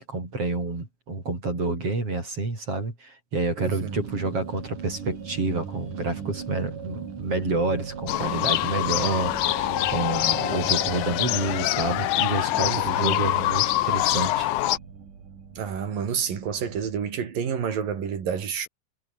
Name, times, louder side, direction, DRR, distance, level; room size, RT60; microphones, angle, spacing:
voice 1, 0.0-14.5, right 3 dB, 40° right, 7.6 m, -29 dB
sound 1, 3.6-17.0, right 6 dB, 70° right, 5.2 m, -39 dB
voice 2, 3.6-4.0 12.7-13.2 15.6-18.7, right 7 dB, 85° right, 5.0 m, -29 dB
sound 2, 8.1-14.8, left 15 dB, 75° left, 2.3 m, -25 dB
omnidirectional pair, 3.9 m